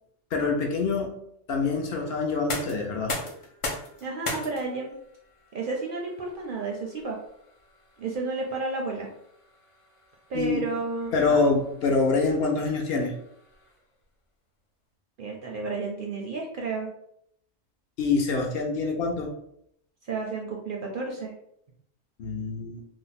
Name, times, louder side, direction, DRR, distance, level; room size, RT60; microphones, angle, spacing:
voice 1, 0.3-1.2 1.5-3.2 10.3-10.6 11.1-13.2 18.0-19.3 22.2-22.8, left 4 dB, 65° left, 1 dB, 0.7 m, -25 dB
sound 1, 2.3-14.0, left 2 dB, 45° left, 0.4 m, -40 dB
voice 2, 4.0-4.9 5.5-7.2 8.0-9.1 10.3-11.4 15.2-16.9 20.0-21.3, right 3 dB, 60° right, 0 dB, 0.6 m, -31 dB
2.6 x 2.1 x 4.0 m, 0.73 s
omnidirectional pair, 1.3 m